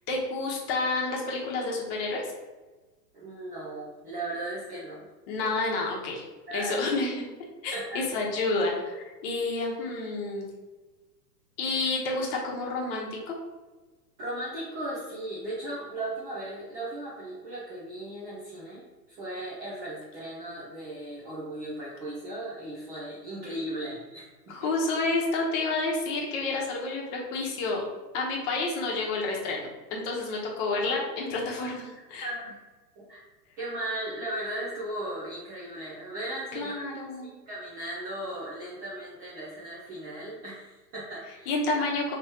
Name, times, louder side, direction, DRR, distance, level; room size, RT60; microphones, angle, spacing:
voice 1, 0.1-2.2 5.3-6.2 6.5-7.2 7.6-10.5 11.6-13.3 24.5-27.8 28.1-32.3 36.5-37.3 41.5-42.2, left 3 dB, 40° left, -2 dB, 1.0 m, -29 dB
voice 2, 3.1-5.1 6.5-6.8 7.7-8.0 14.2-18.8 19.1-24.6 32.2-32.6 33.0-33.2 33.6-36.8 37.2-41.5, right 1 dB, 20° right, -8 dB, 0.4 m, -37 dB
3.2 x 3.1 x 2.8 m, 1.2 s
hypercardioid pair, 115°, 50 cm